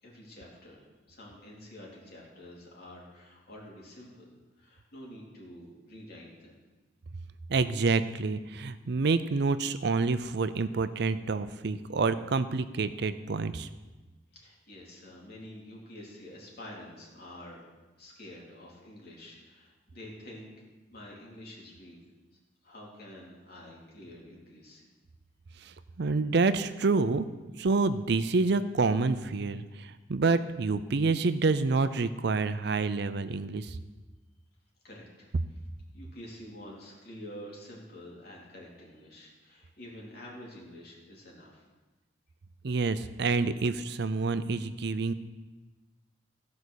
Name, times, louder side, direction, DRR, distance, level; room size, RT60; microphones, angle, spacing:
voice 1, 0.0-4.3 4.6-6.6 14.3-17.6 18.0-20.5 20.9-22.0 22.6-24.8 34.8-35.3 35.9-41.6, left 1 dB, 60° left, -3 dB, 3.2 m, -48 dB
voice 2, 7.5-13.7 25.6-27.3 27.6-33.8 42.6-45.1, right 4 dB, 65° right, 12 dB, 0.5 m, -28 dB
15.5 x 5.3 x 6.3 m, 1.2 s
head